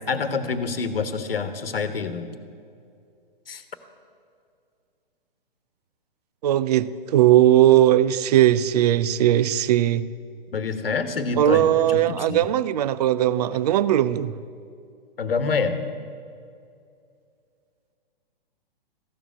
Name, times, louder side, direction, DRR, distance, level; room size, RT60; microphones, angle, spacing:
voice 1, 0.1-2.3 3.5-3.6 10.5-12.4 15.2-15.8, left 5 dB, 75° left, 1.2 m, -27 dB
voice 2, 6.4-10.1 11.4-14.3, right 12 dB, 45° right, 0.4 m, -19 dB
14.0 x 7.1 x 9.8 m
figure-of-eight pair, 125°, 29 cm